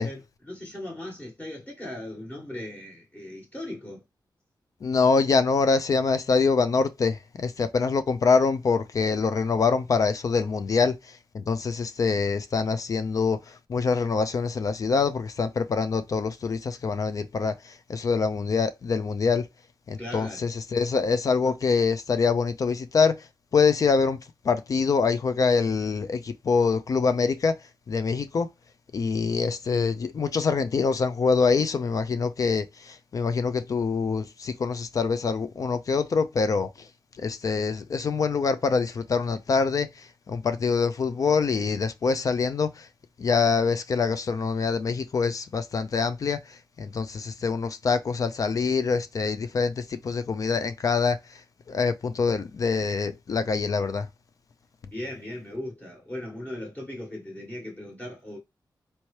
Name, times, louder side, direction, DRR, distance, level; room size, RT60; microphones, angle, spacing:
voice 1, 0.0-4.0 20.0-20.5 54.9-58.4, left 1 dB, 20° left, 1.4 m, -38 dB
voice 2, 4.8-19.5 19.9-23.3 23.5-24.2 24.4-27.6 27.9-28.5 28.9-36.7 37.2-42.9 43.2-51.2 51.7-54.1, left 5 dB, 50° left, 0.4 m, -25 dB
4.3 x 2.8 x 3.2 m
wide cardioid pair, 165°, 8 cm